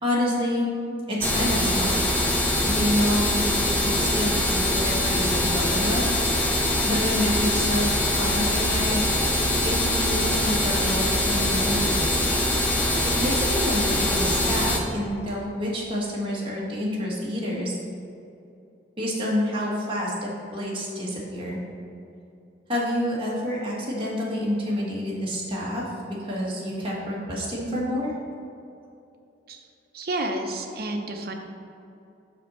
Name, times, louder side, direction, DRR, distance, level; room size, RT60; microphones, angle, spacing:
voice 1, 0.0-2.0 2.7-3.6 3.8-6.1 6.8-9.1 9.6-12.2 13.2-17.7 19.0-21.6 22.7-28.1, left 1 dB, 30° right, -5 dB, 1.6 m, -28 dB
sound 1, 1.2-14.8, left 1 dB, 10° left, 0.5 m, -23 dB
voice 2, 29.9-31.3, right 2 dB, 55° right, 4 dB, 0.7 m, -30 dB
5.8 x 4.4 x 6.3 m, 2.7 s
head